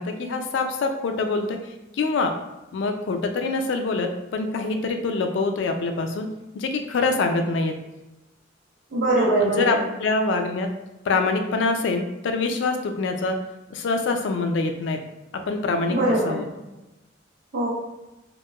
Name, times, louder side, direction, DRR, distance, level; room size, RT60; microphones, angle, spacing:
voice 1, 0.0-1.6 2.0-2.3 2.7-6.3 6.5-7.7 9.4-10.7 11.1-13.4 13.7-15.0 15.5-16.0 16.3-16.5, left 3 dB, 65° left, 6 dB, 0.3 m, -25 dB
voice 2, 8.9-9.9 15.9-16.4 17.5-17.7, right 1 dB, 85° right, -11 dB, 0.9 m, -22 dB
2.9 x 2.1 x 2.3 m, 1.0 s
head